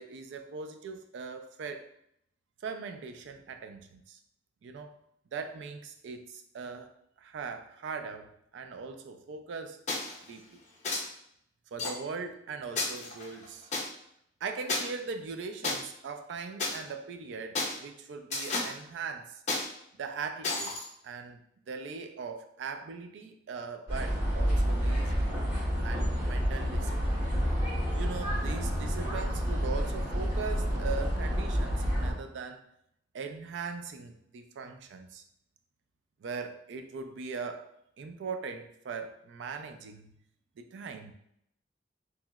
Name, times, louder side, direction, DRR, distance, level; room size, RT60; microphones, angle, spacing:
voice 1, 0.0-1.9 2.6-4.2 4.6-5.0 5.3-6.9 7.2-9.8 10.3-10.6 11.7-13.7 14.4-19.4 20.0-20.8 21.0-21.4 21.7-25.3 25.8-27.3 27.9-32.7 33.1-35.2 36.2-40.1 40.6-41.1, right 5 dB, 75° right, 7 dB, 0.3 m, -40 dB
sound 1, 9.9-10.2 10.8-11.0 11.8-11.9 12.8-13.9 14.7-14.8 15.6-15.7 16.6-16.8 17.6-17.8 18.3-18.7 19.5-19.7 20.4-20.8, left 2 dB, 35° left, 0.5 m, -31 dB
sound 2, 23.9-32.1, equal, 15° right, 1.3 m, -29 dB
3.0 x 2.8 x 2.3 m, 0.73 s
head